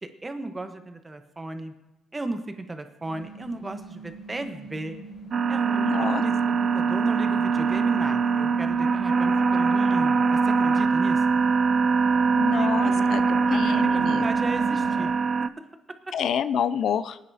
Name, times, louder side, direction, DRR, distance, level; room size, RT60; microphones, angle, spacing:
voice 1, 0.0-1.7 2.1-5.0 5.5-11.4 12.5-15.1 15.6-15.7 16.1-16.2, right 2 dB, 20° right, 8 dB, 1.1 m, -35 dB
sound 1, 3.0-15.1, right 2 dB, 55° left, 4.7 m, -40 dB
sound 2, 5.3-15.5, right 5 dB, 45° right, 0.4 m, -23 dB
voice 2, 5.8-6.2 12.3-13.2 13.5-14.3 16.1-17.2, left 8 dB, 70° left, 14 dB, 0.3 m, -28 dB
21.5 x 9.2 x 2.8 m, 0.96 s
cardioid pair, 90°, 0 cm